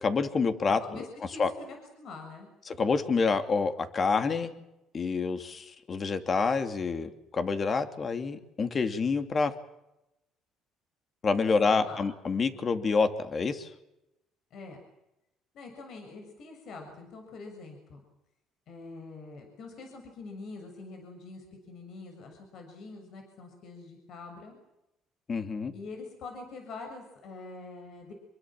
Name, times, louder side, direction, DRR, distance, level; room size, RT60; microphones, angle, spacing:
voice 1, 0.0-1.0 1.4-1.5 2.7-4.5 4.9-9.5 11.2-13.7 25.3-25.7, left 4 dB, 35° left, 8 dB, 2.8 m, -27 dB
voice 2, 0.7-2.5 11.4-12.0 14.5-14.8 15.5-18.0 18.7-24.6 25.7-28.1, left 3 dB, 60° left, 4 dB, 6.9 m, -45 dB
27.0 x 22.5 x 7.6 m, 0.89 s
cardioid pair, 100°, 0 cm